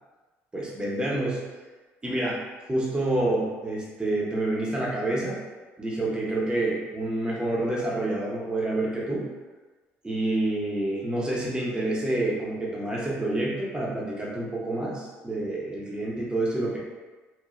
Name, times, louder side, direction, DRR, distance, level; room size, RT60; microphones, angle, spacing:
voice 1, 0.5-1.4 2.0-2.4 2.7-5.4 5.8-9.3 10.0-16.8, right 1 dB, 15° right, -5 dB, 0.7 m, -28 dB
3.0 x 2.2 x 2.4 m, 1.3 s
supercardioid pair, 80°, 6 cm